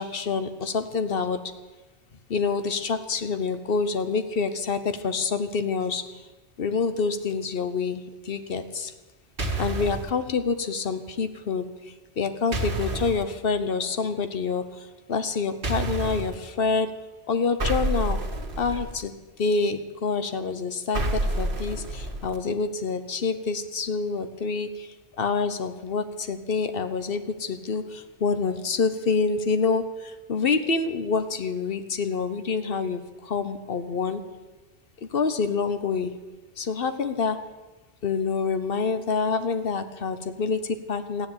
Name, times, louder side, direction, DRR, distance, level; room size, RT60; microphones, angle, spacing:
voice 1, 0.0-1.4 2.3-6.0 6.6-8.9 9.6-11.6 12.2-16.9 17.3-18.2 18.6-19.1 19.4-34.2 35.1-36.1 36.6-37.4 38.0-41.3, left 4 dB, 60° left, 11 dB, 1.2 m, -27 dB
sound 1, 9.4-10.1 12.5-13.2 15.6-16.3 17.6-19.0 20.9-22.4, right 2 dB, 55° right, 1.9 m, -28 dB
14.0 x 10.0 x 8.8 m, 1.2 s
omnidirectional pair, 1.1 m